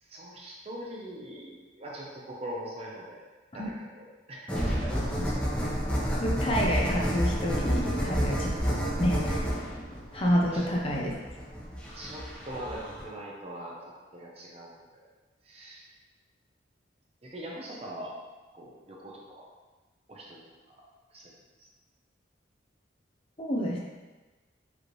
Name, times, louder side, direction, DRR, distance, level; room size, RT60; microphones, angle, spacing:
voice 1, 0.0-3.2 3.5-5.4 10.5-10.7 11.9-15.1 15.4-15.9 17.2-18.2 18.5-19.5 20.1-20.7 21.1-21.3 21.6-21.7, right 1 dB, 30° right, -3 dB, 0.7 m, -42 dB
sound 1, 4.5-13.0, equal, 5° left, 0.9 m, -30 dB
voice 2, 6.2-9.4 10.1-11.2 23.4-23.8, equal, 30° left, -2 dB, 0.5 m, -29 dB
5.0 x 3.2 x 3.1 m, 1.2 s
head